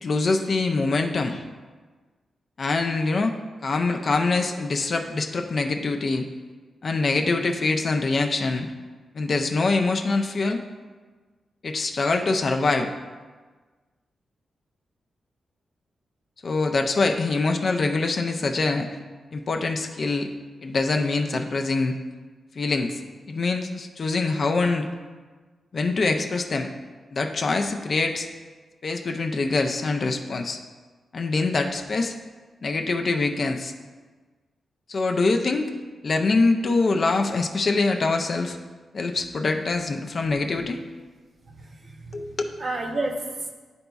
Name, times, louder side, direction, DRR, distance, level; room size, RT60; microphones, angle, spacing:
voice 1, 0.0-1.4 2.6-3.3 3.6-6.2 6.8-8.7 9.1-10.6 11.6-12.9 16.4-18.9 19.3-20.3 20.6-21.9 22.6-23.0 23.3-24.9 25.7-26.7 27.1-28.3 28.8-30.6 31.1-32.2 32.6-33.7 34.9-35.7 36.0-38.6 38.9-40.8 42.1-42.3, left 3 dB, 40° left, 4 dB, 0.4 m, -24 dB
voice 2, 41.5-42.3 42.6-43.5, right 2 dB, 40° right, 2 dB, 0.7 m, -31 dB
10.5 x 3.9 x 2.3 m, 1.4 s
wide cardioid pair, 160°, 0 cm